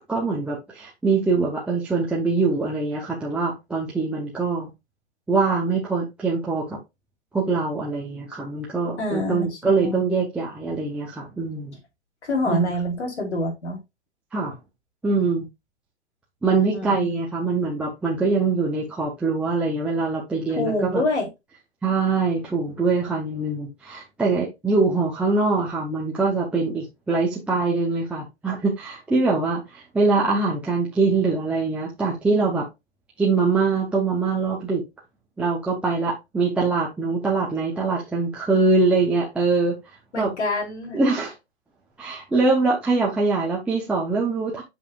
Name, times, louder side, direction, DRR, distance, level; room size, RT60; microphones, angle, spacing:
voice 1, 0.1-4.7 5.3-6.8 7.3-11.8 12.5-12.7 14.3-14.6 15.0-15.5 16.4-21.0 21.8-32.7 33.2-34.8 35.4-39.8 40.1-40.3 40.9-41.3 42.0-44.6, right 3 dB, 5° right, 0.7 m, -23 dB
voice 2, 9.0-10.1 12.2-13.8 16.7-17.1 20.5-21.3 40.1-41.0, left 2 dB, 80° left, 3.3 m, -26 dB
7.4 x 5.6 x 2.4 m
hypercardioid pair, 145°, 34 cm